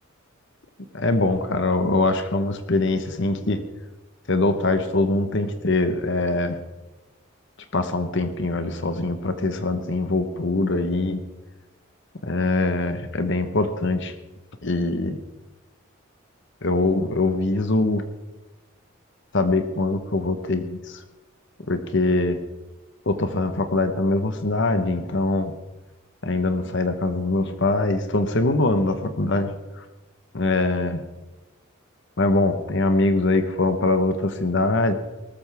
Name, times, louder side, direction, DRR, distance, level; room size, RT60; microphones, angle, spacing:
voice 1, 0.9-3.6 4.3-6.6 7.7-11.2 12.2-14.1 14.6-15.2 16.6-18.0 19.3-21.0 21.7-22.4 23.1-25.5 26.2-29.8 30.3-31.0 32.2-34.9, left 2 dB, 60° left, 8 dB, 1.1 m, -23 dB
18.5 x 14.0 x 3.5 m, 1.1 s
head